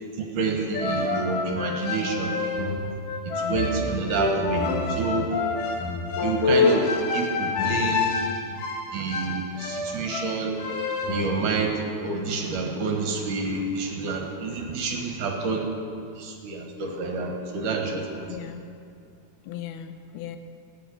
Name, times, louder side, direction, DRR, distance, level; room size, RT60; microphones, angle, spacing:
voice 1, 0.2-2.4 3.3-5.3 6.2-8.1 8.9-10.7 11.1-15.7 16.2-18.3, right 4 dB, 65° right, 2 dB, 2.7 m, -28 dB
sound 1, 0.7-11.4, left 4 dB, 65° left, 2.9 m, -27 dB
voice 2, 3.4-3.8 18.3-18.6 19.5-20.4, left 9 dB, 85° left, 8 dB, 2.8 m, -37 dB
15.5 x 9.2 x 8.4 m, 2.5 s
omnidirectional pair, 4.3 m